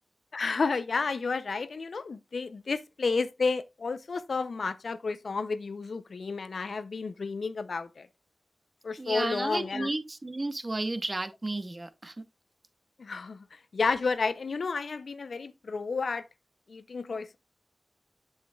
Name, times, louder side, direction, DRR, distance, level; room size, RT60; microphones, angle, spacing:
voice 1, 0.3-8.1 8.8-9.9 13.0-16.2 16.7-17.4, left 4 dB, 80° left, 0.6 m, -31 dB
voice 2, 9.0-12.1, right 2 dB, 35° right, 0.9 m, -33 dB
7.7 x 7.3 x 2.3 m
wide cardioid pair, 60°, 0 cm